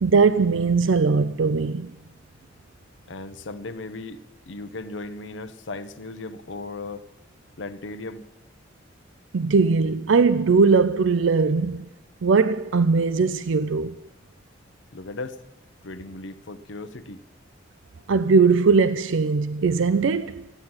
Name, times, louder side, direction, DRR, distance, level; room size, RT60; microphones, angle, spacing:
voice 1, 0.0-1.9 9.3-11.9 12.2-14.0 18.1-20.4, right 4 dB, 90° right, 0.5 m, -20 dB
voice 2, 3.1-7.1 7.6-8.2 14.9-15.4 15.8-17.2, left 3 dB, 70° left, 0.8 m, -36 dB
15.0 x 8.8 x 9.5 m
head